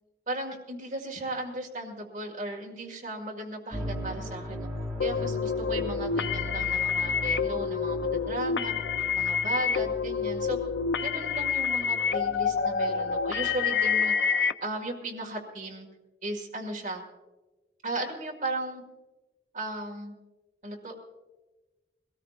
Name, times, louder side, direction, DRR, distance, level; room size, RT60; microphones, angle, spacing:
voice 1, 0.3-4.7 5.0-8.7 9.1-10.6 11.0-14.1 14.6-15.9 16.2-17.0 17.8-18.8 19.5-20.1 20.6-21.0, right 2 dB, 45° right, -1 dB, 1.9 m, -36 dB
sound 1, 3.7-13.9, left 1 dB, ahead, 1.8 m, -39 dB
sound 2, 5.0-14.5, left 6 dB, 85° left, 0.5 m, -28 dB
21.5 x 18.5 x 2.5 m, 1.2 s
head